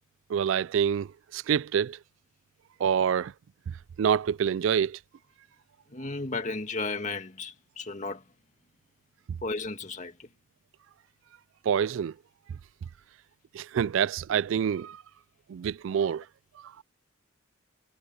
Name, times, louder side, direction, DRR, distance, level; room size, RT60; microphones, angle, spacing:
voice 1, 0.3-2.0 2.8-3.3 4.0-5.0 11.7-12.1 13.5-15.0 15.5-16.2, right 8 dB, 65° right, 0.3 m, -26 dB
voice 2, 5.9-8.2 9.4-10.3, left 3 dB, 35° left, 2.1 m, -34 dB
head